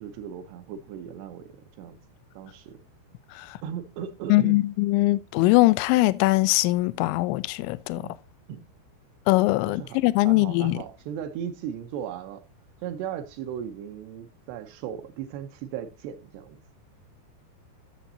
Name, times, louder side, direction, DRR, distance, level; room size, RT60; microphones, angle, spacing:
voice 1, 0.0-2.0 2.4-2.8 3.6-4.6 8.0-8.1 8.5-8.6 9.7-10.0 10.2-12.4 12.8-16.6, right 9 dB, 75° right, 2.7 m, -37 dB
voice 2, 4.3-8.0 9.3-10.8, left 19 dB, 85° left, 2.9 m, -21 dB
14.0 x 7.0 x 2.7 m
omnidirectional pair, 5.3 m